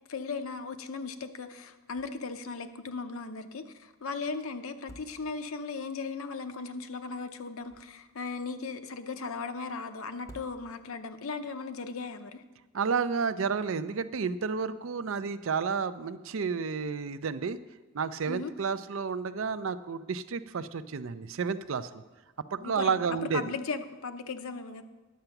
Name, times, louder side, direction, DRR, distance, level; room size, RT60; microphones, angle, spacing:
voice 1, 0.1-12.4 18.2-18.5 22.6-23.0 23.3-24.8, left 4 dB, 70° left, 9 dB, 0.7 m, -37 dB
sound 1, 1.9-2.4 2.7-2.8 4.6-5.7 7.4-8.3 10.1-11.1, equal, 15° left, 0.7 m, -53 dB
voice 2, 12.7-17.6 17.9-22.0 22.5-23.5, right 5 dB, 60° right, 13 dB, 0.5 m, -31 dB
10.5 x 7.8 x 5.8 m, 1.2 s
head